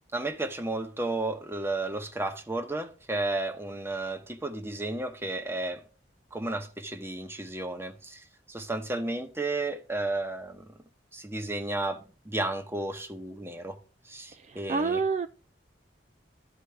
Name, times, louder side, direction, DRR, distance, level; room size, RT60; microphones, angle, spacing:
voice 1, 0.1-5.8 6.3-10.7 11.1-13.8 14.1-15.0, right 2 dB, 15° right, 1.0 m, -33 dB
voice 2, 14.5-15.3, right 4 dB, 40° right, 0.3 m, -28 dB
13.0 x 4.5 x 3.4 m
head